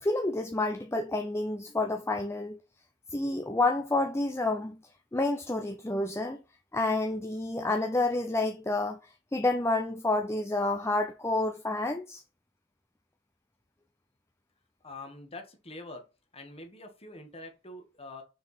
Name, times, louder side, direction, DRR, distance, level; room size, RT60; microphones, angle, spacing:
voice 1, 0.0-2.6 3.1-4.8 5.1-6.4 6.7-9.0 9.3-12.2, left 2 dB, 15° left, 0.5 m, -29 dB
voice 2, 14.8-16.0 16.3-18.2, left 2 dB, 30° left, 1.6 m, -45 dB
6.2 x 4.6 x 4.2 m
head